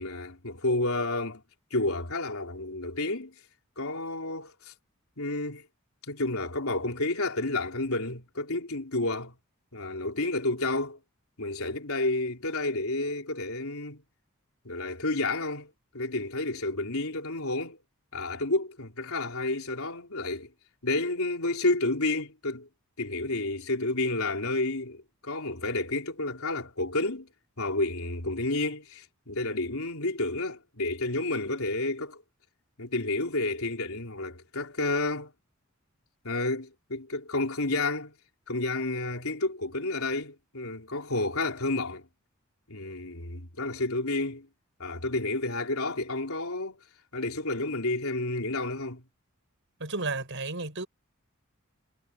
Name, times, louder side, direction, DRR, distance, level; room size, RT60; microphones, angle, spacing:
voice 1, 0.0-1.4 1.7-3.3 3.8-4.7 5.2-5.7 6.1-9.3 9.7-11.0 11.4-14.0 14.6-17.8 18.1-20.5 20.8-22.7 23.0-27.3 27.6-32.2 32.8-35.3 36.2-38.1 38.5-42.1 42.7-44.5 44.8-46.8 47.1-49.0, left 2 dB, 75° left, 3.8 m, -30 dB
voice 2, 49.8-50.9, right 3 dB, 60° right, 7.0 m, -32 dB
head